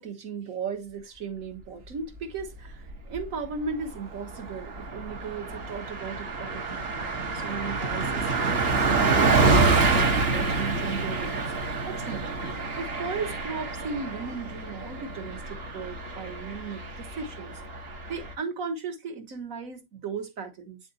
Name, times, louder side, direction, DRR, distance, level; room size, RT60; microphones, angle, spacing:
voice 1, 0.0-6.9 7.3-11.4 11.9-20.8, right 5 dB, 70° right, 1.7 m, -36 dB
Car passing by, 2.7-3.3 3.6-3.8 4.1-18.3, right 3 dB, 45° right, 1.3 m, -27 dB
9.7 x 3.8 x 2.7 m
omnidirectional pair, 1.5 m